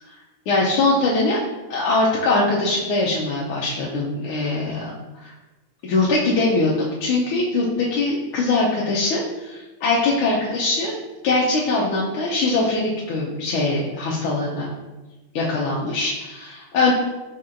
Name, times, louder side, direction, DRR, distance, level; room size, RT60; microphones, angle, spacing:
voice 1, 0.5-1.4 1.7-4.9 5.2-5.3 5.8-6.7 7.0-10.9 11.2-14.7 15.3-16.9, left 2 dB, 90° left, -5 dB, 1.5 m, -22 dB
4.5 x 4.2 x 2.5 m, 1.1 s
omnidirectional pair, 2.3 m